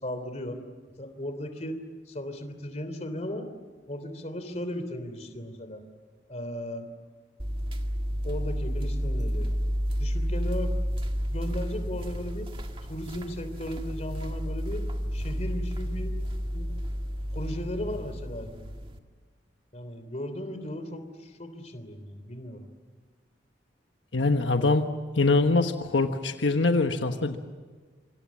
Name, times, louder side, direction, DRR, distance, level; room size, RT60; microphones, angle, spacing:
voice 1, 0.0-0.6 1.0-1.8 2.1-3.5 3.9-5.8 6.3-6.9 8.2-9.5 10.0-10.7 11.3-12.5 12.9-14.8 15.1-16.1 16.5-16.8 17.3-18.5 19.7-22.7, left 1 dB, 35° left, 9 dB, 3.2 m, -36 dB
sound 1, 7.4-19.0, equal, 30° right, 1.8 m, -31 dB
voice 2, 24.1-24.9 25.1-27.4, left 3 dB, 80° left, 6 dB, 1.3 m, -23 dB
27.0 x 26.0 x 7.4 m, 1.5 s
head